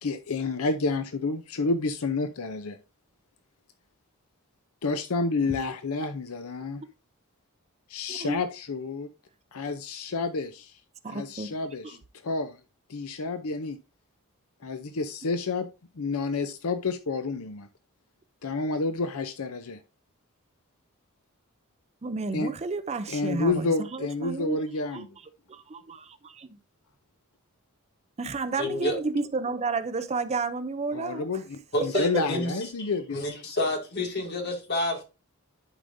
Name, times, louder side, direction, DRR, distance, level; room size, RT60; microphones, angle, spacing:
voice 1, 0.0-2.8 4.8-6.8 7.9-9.1 9.5-10.8 11.1-12.0 12.2-12.6 12.9-13.8 14.6-15.7 16.0-17.7 18.4-19.8 22.3-22.5 23.1-25.1 30.9-33.3, left 3 dB, 70° left, 0.6 m, -29 dB
voice 2, 8.1-8.4 11.0-11.6 11.8-12.0 22.0-24.6 24.9-25.1 25.5-26.6 28.2-31.4 32.3-32.4, right 3 dB, 30° right, 0.5 m, -32 dB
voice 3, 28.6-29.0 31.7-32.5 32.8-35.0, left 1 dB, 50° left, 2.2 m, -29 dB
11.0 x 5.0 x 2.6 m
head